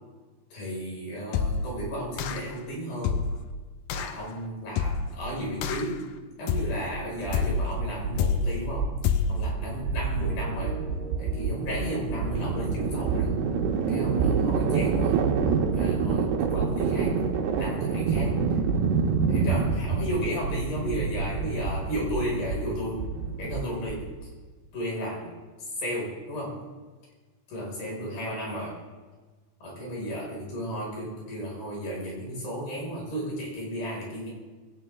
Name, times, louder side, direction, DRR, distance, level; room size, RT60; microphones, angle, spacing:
voice 1, 0.5-3.3 3.9-6.0 6.4-8.9 9.3-10.8 11.2-13.4 13.9-15.2 15.7-17.2 17.6-18.4 19.3-23.1 23.4-24.1 24.7-25.4 25.8-26.6 27.5-28.8 29.6-34.3, equal, 60° left, -3 dB, 7.1 m, -34 dB
sound 1, 1.3-1.8 2.2-2.6 3.0-3.5 3.9-4.2 4.8-5.2 5.6-6.0 6.5-6.9 7.3-7.7 8.2-8.6 9.0-9.5, left 5 dB, 80° left, 2.0 m, -27 dB
sound 2, 7.2-24.3, right 5 dB, 75° right, 3.4 m, -27 dB
sound 3, 10.2-18.0, right 4 dB, 50° right, 1.5 m, -39 dB
21.0 x 17.5 x 3.6 m, 1.3 s
omnidirectional pair, 4.8 m